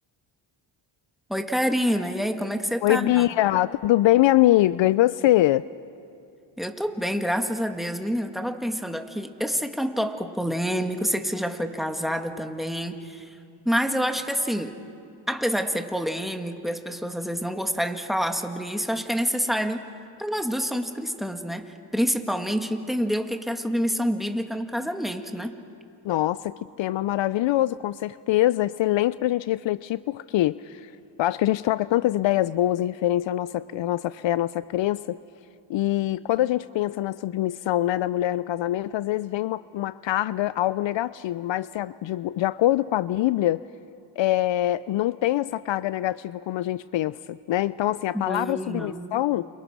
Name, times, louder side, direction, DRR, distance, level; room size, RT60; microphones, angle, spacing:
voice 1, 1.3-3.2 6.6-13.3 13.7-14.7 15.3-19.8 20.2-21.6 21.9-25.5 48.1-49.2, equal, ahead, 6 dB, 2.2 m, -27 dB
voice 2, 2.8-5.7 26.0-30.9 31.2-35.2 35.7-43.6 44.2-49.5, left 14 dB, 65° left, 18 dB, 0.6 m, -24 dB
29.0 x 28.5 x 6.2 m, 2.5 s
cardioid pair, 65°, 49 cm